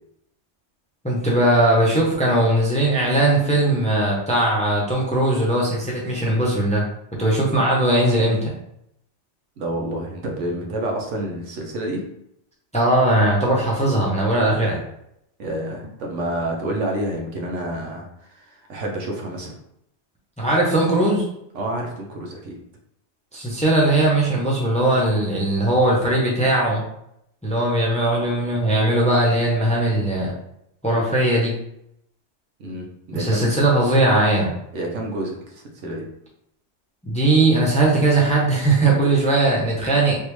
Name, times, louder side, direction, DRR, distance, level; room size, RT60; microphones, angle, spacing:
voice 1, 1.0-6.8 7.2-8.5 12.7-14.8 20.4-21.2 23.3-26.8 27.4-30.3 30.8-31.6 33.1-34.5 37.0-40.2, right 1 dB, 10° left, -4 dB, 0.6 m, -19 dB
voice 2, 9.6-12.0 15.4-19.5 21.5-22.6 32.6-33.5 34.7-36.1, right 1 dB, 90° right, 1 dB, 1.1 m, -29 dB
3.4 x 2.5 x 3.0 m, 0.76 s
omnidirectional pair, 1.2 m